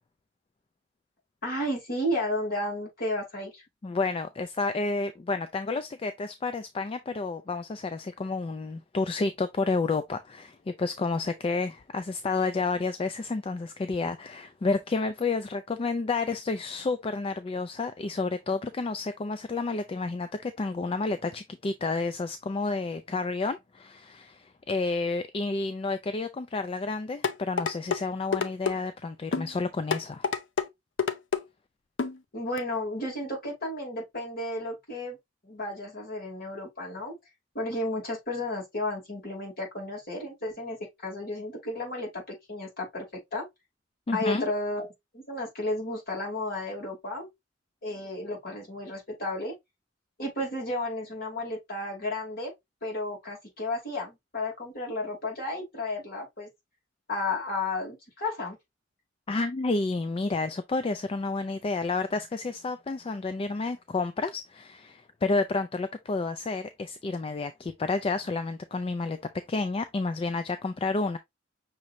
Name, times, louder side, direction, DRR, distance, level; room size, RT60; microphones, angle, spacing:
voice 1, 1.4-3.6 32.3-35.2 35.4-37.2 37.5-43.1 43.3-43.5 44.1-47.3 47.8-49.6 50.2-52.5 52.8-56.5 57.1-58.6, left 1 dB, 55° left, 2.9 m, -33 dB
voice 2, 3.8-30.3 44.1-44.4 59.3-69.2 69.5-71.2, left 3 dB, 30° left, 0.4 m, -30 dB
sound 1, 27.2-28.0 28.3-28.8 29.3-29.5 29.9-30.7 31.0-31.4 32.0-32.2 32.6-32.7, left 6 dB, 80° left, 0.6 m, -27 dB
6.0 x 3.1 x 2.6 m
head